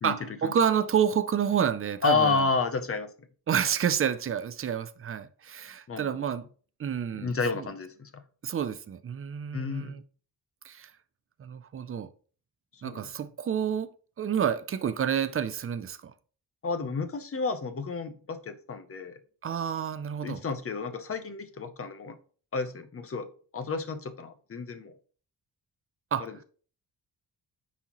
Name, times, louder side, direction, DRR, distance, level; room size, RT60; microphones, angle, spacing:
voice 1, 0.0-2.4 3.5-6.4 6.8-7.7 8.4-10.0 10.6-10.9 11.4-12.1 12.8-13.9 14.2-16.1 19.4-20.4 26.1-26.3, right 8 dB, 35° right, 0.4 m, -29 dB
voice 2, 2.0-3.1 5.9-6.3 7.2-8.2 9.5-10.0 12.7-13.1 16.6-19.2 20.2-22.2 22.5-23.3 23.5-24.9 26.2-26.3, left 4 dB, 35° left, 0.7 m, -31 dB
9.4 x 4.1 x 3.0 m
wide cardioid pair, 180°, 41 cm